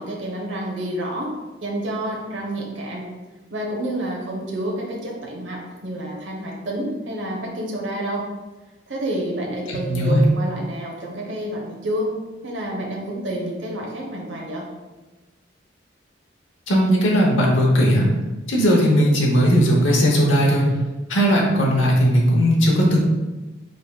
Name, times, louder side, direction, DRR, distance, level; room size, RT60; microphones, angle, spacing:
voice 1, 0.0-1.3 1.6-3.1 3.5-8.3 8.9-12.1 12.4-14.7, right 1 dB, 75° right, -2 dB, 0.9 m, -29 dB
voice 2, 9.7-10.2 16.7-18.1 18.5-20.7 21.1-23.0, equal, 90° left, -2 dB, 0.9 m, -17 dB
5.1 x 3.5 x 2.3 m, 1.2 s
head